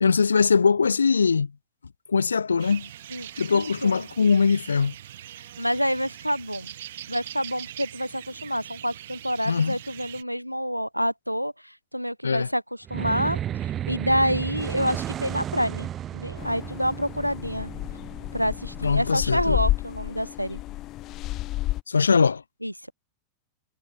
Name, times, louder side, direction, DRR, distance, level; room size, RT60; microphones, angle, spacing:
voice 1, 0.0-1.5 2.1-2.9 3.4-4.9 9.5-9.8 12.2-12.5 18.8-19.6 21.9-22.4, left 5 dB, 75° left, 1.1 m, -21 dB
sound 1, 2.6-10.2, right 12 dB, 60° right, 3.4 m, -42 dB
voice 2, 3.1-4.1 5.6-6.7 7.1-12.6 12.9-13.4 13.9-17.7 18.3-20.6 22.6-22.9, equal, 90° right, 0.9 m, -28 dB
sound 2, 12.8-19.5, right 11 dB, 30° right, 7.1 m, -33 dB
sound 3, 16.4-21.8, left 16 dB, 35° left, 0.7 m, -31 dB
figure-of-eight pair, 90°, 0 cm